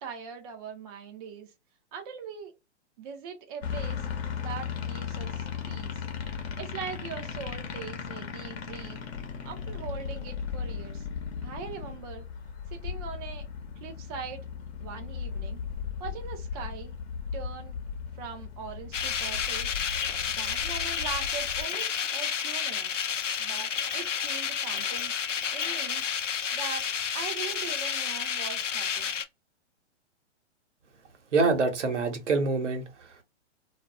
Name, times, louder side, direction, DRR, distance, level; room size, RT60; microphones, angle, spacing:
voice 1, 0.0-1.5 1.9-2.5 3.0-4.1 4.4-6.1 6.6-9.0 9.4-11.1 11.4-12.3 12.7-13.5 13.8-14.5 14.8-15.6 16.0-17.0 17.3-17.8 18.2-19.7 20.4-23.0 23.4-26.0 26.5-26.9 27.1-29.1, right 6 dB, 35° right, 0.5 m, -41 dB
sound 1, 3.6-21.6, left 6 dB, 60° left, 0.8 m, -37 dB
sound 2, 18.9-29.2, left 7 dB, 85° left, 0.5 m, -30 dB
voice 2, 31.3-33.2, right 3 dB, 75° right, 1.0 m, -26 dB
2.4 x 2.2 x 3.5 m
figure-of-eight pair, 120°, 36 cm